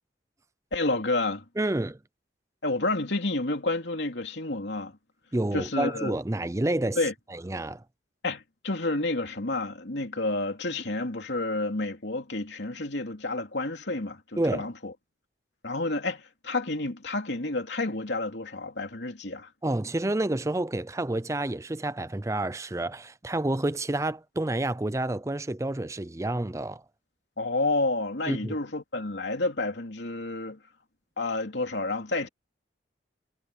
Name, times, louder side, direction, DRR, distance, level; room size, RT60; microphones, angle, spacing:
voice 1, 0.7-1.4 2.6-4.9 5.5-6.1 7.0-7.1 8.2-14.2 14.5-14.9 15.6-19.5 27.4-30.6 31.2-32.3, left 2 dB, 75° left, 2.9 m, -30 dB
voice 2, 1.6-2.0 5.3-7.0 7.3-7.8 14.4-14.7 19.6-26.8 28.3-28.6, right 1 dB, 15° right, 0.5 m, -29 dB
head